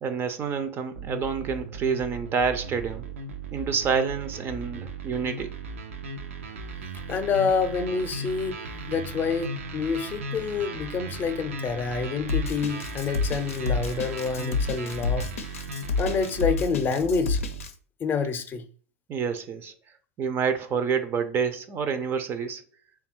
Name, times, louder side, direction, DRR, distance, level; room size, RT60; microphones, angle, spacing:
voice 1, 0.0-3.1 3.5-5.6 19.1-19.7 20.2-22.6, right 6 dB, 30° right, 0.5 m, -28 dB
sound 1, 0.9-17.7, right 2 dB, 90° right, 0.5 m, -37 dB
voice 2, 7.1-8.6 8.9-15.3 16.0-17.4 18.0-18.6, left 5 dB, 30° left, 0.6 m, -27 dB
Drum kit, 12.3-17.7, left 4 dB, 90° left, 0.5 m, -29 dB
3.4 x 2.3 x 4.4 m
hypercardioid pair, 105°, 7 cm